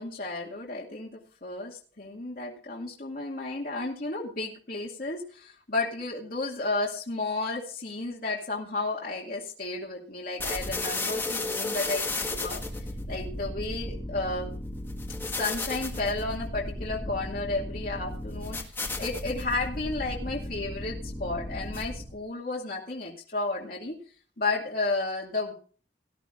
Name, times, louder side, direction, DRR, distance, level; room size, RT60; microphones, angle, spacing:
voice 1, 0.0-12.6 13.1-14.5 15.2-24.0 24.4-25.5, left 2 dB, 55° left, -3 dB, 2.3 m, -32 dB
sound 1, 10.4-22.2, left 2 dB, 15° left, 1.7 m, -34 dB
19.0 x 11.5 x 2.6 m, 0.41 s
head